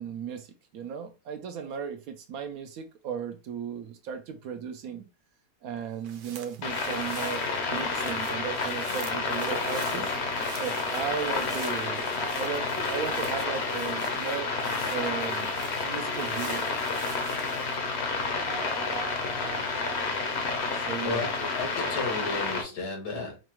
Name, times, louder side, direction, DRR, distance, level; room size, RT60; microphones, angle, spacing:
voice 1, 0.0-5.1 5.6-7.4 7.7-10.1 10.5-14.5 14.9-16.7 20.9-21.2, right 7 dB, 70° right, 0.9 m, -36 dB
sound 1, 5.8-17.8, right 8 dB, 90° right, 1.3 m, -47 dB
sound 2, 6.6-22.6, left 4 dB, 50° left, 0.8 m, -30 dB
sound 3, 7.3-18.1 18.5-20.9, right 1 dB, 30° right, 0.6 m, -47 dB
voice 2, 20.7-23.4, left 4 dB, 85° left, 2.0 m, -34 dB
5.1 x 2.3 x 3.0 m
omnidirectional pair, 1.8 m